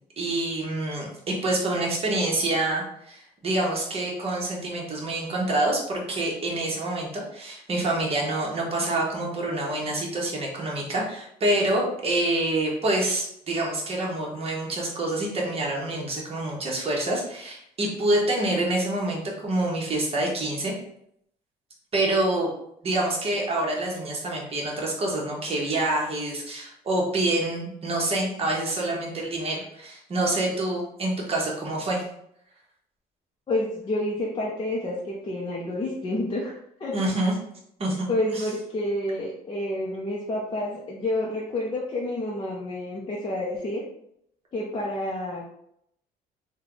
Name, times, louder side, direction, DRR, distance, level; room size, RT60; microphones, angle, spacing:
voice 1, 0.2-20.7 21.9-22.5 22.8-32.0 36.9-37.3 37.8-38.1 38.3-38.4, right 1 dB, 35° right, -2 dB, 1.2 m, -27 dB
voice 2, 33.5-36.9 38.1-43.8 44.5-45.5, left 1 dB, 30° left, -4 dB, 0.7 m, -29 dB
3.3 x 2.3 x 3.8 m, 0.73 s
cardioid pair, 110°, 17 cm